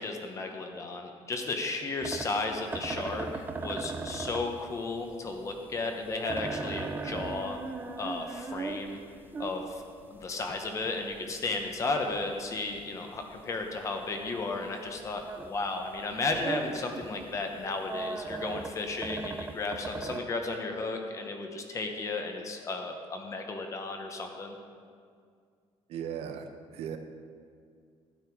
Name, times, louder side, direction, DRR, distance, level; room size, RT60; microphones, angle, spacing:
voice 1, 0.0-7.6 8.0-9.0 9.4-9.8 10.1-24.6, left 3 dB, 30° left, 4 dB, 1.0 m, -34 dB
sound 1, 2.0-15.6 15.9-20.2, right 4 dB, 20° right, 0.5 m, -38 dB
voice 2, 25.9-27.0, right 8 dB, 70° right, 7 dB, 0.8 m, -37 dB
12.0 x 8.9 x 4.7 m, 2.2 s
cardioid pair, 170°, 11 cm